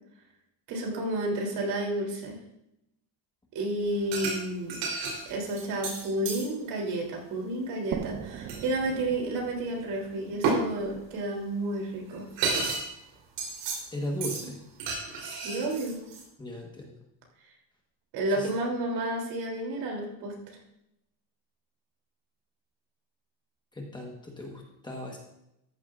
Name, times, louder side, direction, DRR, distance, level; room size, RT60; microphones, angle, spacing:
voice 1, 0.7-2.4 3.5-4.7 5.3-12.2 15.2-16.0 18.1-20.3, right 1 dB, 65° right, -1 dB, 3.4 m, -31 dB
sound 1, 4.1-4.4 4.7-6.5 8.5-8.7 10.4-10.6 11.8-11.9 12.1-12.9 13.1-13.8 14.2-14.4 14.8-16.2, right 4 dB, 85° right, 3.8 m, -31 dB
sound 2, 7.9-11.4, right 9 dB, 30° right, 0.4 m, -40 dB
voice 2, 13.9-14.6 16.4-17.0 18.3-18.5 23.7-25.2, left 1 dB, 10° left, 0 dB, 1.3 m, -37 dB
13.5 x 11.0 x 2.5 m, 0.83 s
cardioid pair, 180°, 41 cm